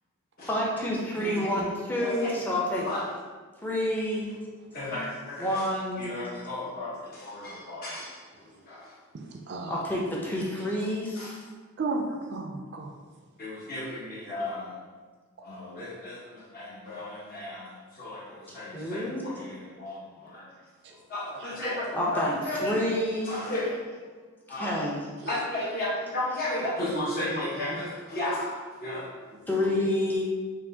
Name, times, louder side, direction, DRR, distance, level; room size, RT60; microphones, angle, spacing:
voice 1, 0.5-2.9 3.6-4.3 5.4-6.1 9.7-11.4 18.7-19.4 21.9-23.4 24.5-25.0 29.5-30.2, left 1 dB, 10° left, -4 dB, 0.6 m, -28 dB
voice 2, 1.2-1.7 9.1-9.7 11.8-12.9 15.6-15.9 21.3-21.7 25.2-25.3, right 3 dB, 50° right, 1 dB, 0.4 m, -35 dB
voice 3, 2.0-3.1 4.7-5.6 6.0-8.2 8.6-8.9 11.1-11.3 13.4-14.7 15.4-20.5 21.1-22.8 23.2-23.9 24.5-24.9 25.3-29.2, left 1 dB, 45° left, -6 dB, 1.1 m, -34 dB
5.7 x 2.5 x 2.7 m, 1.4 s
head